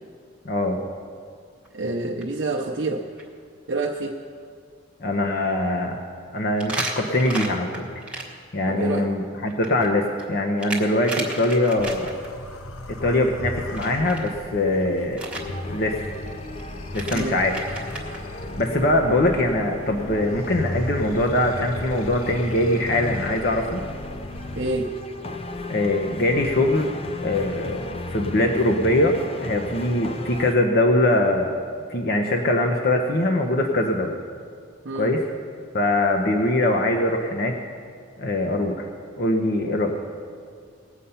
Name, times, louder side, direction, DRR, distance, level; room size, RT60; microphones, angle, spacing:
voice 1, 0.4-0.8 5.0-6.0 6.3-7.8 8.5-12.1 12.9-15.2 15.7-16.0 16.9-17.6 18.6-23.8 25.7-26.9 27.2-31.5 31.9-34.1 35.0-35.2 35.7-37.6 38.2-38.9 39.2-40.0, left 1 dB, 50° left, 2 dB, 0.9 m, -22 dB
sound 1, 1.7-1.9 2.2-2.3 2.8-2.9 3.2-3.3 6.6-8.2 9.5-12.3 13.7-14.3 15.2-15.4 16.6-16.7 16.9-18.2, right 2 dB, 5° right, 1.4 m, -33 dB
voice 2, 1.7-3.1 3.7-4.2 8.7-9.1 17.1-17.4 24.6-24.9 34.8-35.2, right 2 dB, 60° right, -1 dB, 0.7 m, -27 dB
sound 2, 11.8-24.9, left 1 dB, 90° left, 0.8 m, -37 dB
sound 3, 15.3-30.6, left 2 dB, 30° left, 0.5 m, -35 dB
19.0 x 8.2 x 5.7 m, 2.1 s
head